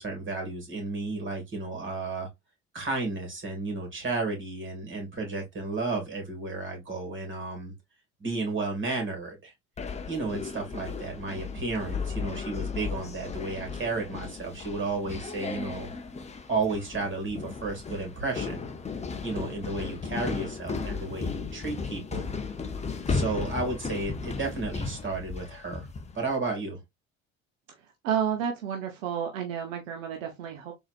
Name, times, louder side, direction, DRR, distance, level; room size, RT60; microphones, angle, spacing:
voice 1, 0.0-2.3 2.7-7.7 8.2-9.5 10.1-15.9 16.5-18.6 19.2-22.2 23.1-25.9 26.1-26.8, right 3 dB, 30° right, 2.2 m, -32 dB
sound 1, 9.8-26.2, left 4 dB, 15° left, 0.6 m, -35 dB
voice 2, 28.0-30.7, right 8 dB, 75° right, 0.8 m, -31 dB
4.0 x 2.8 x 2.4 m
figure-of-eight pair, 60°, 40 cm